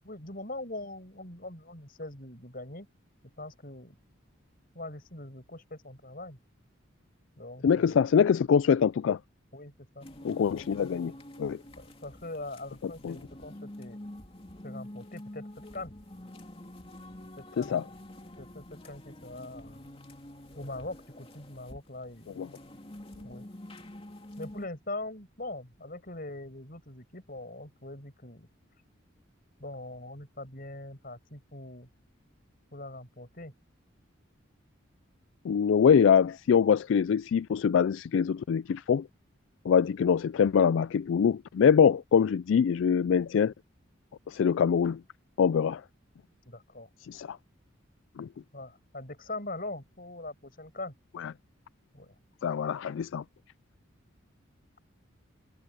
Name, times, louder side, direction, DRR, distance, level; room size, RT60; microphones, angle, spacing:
voice 1, 0.0-2.9 3.4-4.0 4.7-6.4 7.4-8.0 9.5-10.1 11.8-14.0 14.6-15.9 17.4-17.9 18.4-19.9 20.5-22.3 23.2-23.5 24.4-28.5 29.6-31.9 32.7-33.5 46.5-46.9 48.5-50.9 51.9-52.1, left 2 dB, 45° left, 7.6 m, -42 dB
voice 2, 7.6-9.2 10.2-11.1 11.4-11.6 13.0-13.2 17.6-17.8 22.4-22.5 35.4-39.1 39.7-43.5 44.3-45.0 45.4-45.8 47.0-47.4 48.2-48.3 51.2-51.3 52.4-53.2, left 7 dB, 70° left, 0.3 m, -24 dB
sound 1, 10.0-24.7, left 1 dB, 25° left, 3.0 m, -47 dB
head